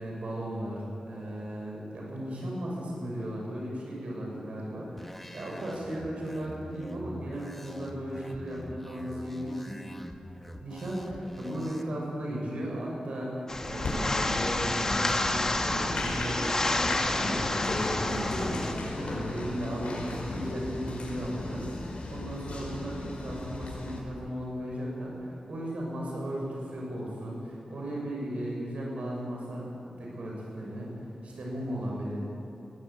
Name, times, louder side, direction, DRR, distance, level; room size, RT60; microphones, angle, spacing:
voice 1, 0.0-9.8 10.6-11.0 11.3-16.4 16.9-30.9 31.2-32.2, equal, 80° right, -3 dB, 6.7 m, -36 dB
sound 1, 5.0-11.8, left 1 dB, 10° left, 1.5 m, -45 dB
sound 2, 13.5-18.7, left 2 dB, 25° left, 1.6 m, -30 dB
Applause, 13.8-24.0, left 2 dB, 80° left, 5.3 m, -35 dB
22.0 x 18.0 x 8.7 m, 3.0 s
wide cardioid pair, 125°, 2 cm